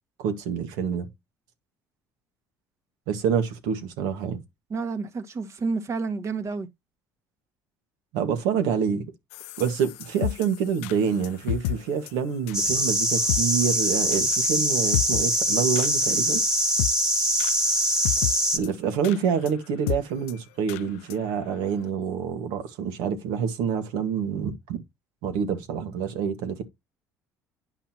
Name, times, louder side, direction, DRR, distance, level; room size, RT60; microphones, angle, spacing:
voice 1, 0.2-1.1 3.1-4.4 8.1-9.0 9.6-16.4 18.5-24.8 25.2-26.6, right 7 dB, 80° right, 1.8 m, -27 dB
voice 2, 4.7-6.7, right 4 dB, 45° right, 1.6 m, -30 dB
sound 1, 9.3-11.8 12.1-12.2 12.5-12.6 12.9-13.0 13.3-13.4 13.7-13.8 14.1-14.2 14.5-14.6 14.9-15.4 15.8-15.9 16.2-16.3 16.6-17.0 17.4-17.5 17.8-18.3 18.6-18.7 19.0-19.2 19.5-19.6 19.9-20.0 20.3-20.4 20.7-20.8 21.1-21.2 21.6-21.7, left 15 dB, 90° left, 0.4 m, -30 dB
sound 2, 12.5-18.6, equal, 5° right, 1.7 m, -23 dB
9.9 x 5.6 x 2.9 m
supercardioid pair, 80°, 7 cm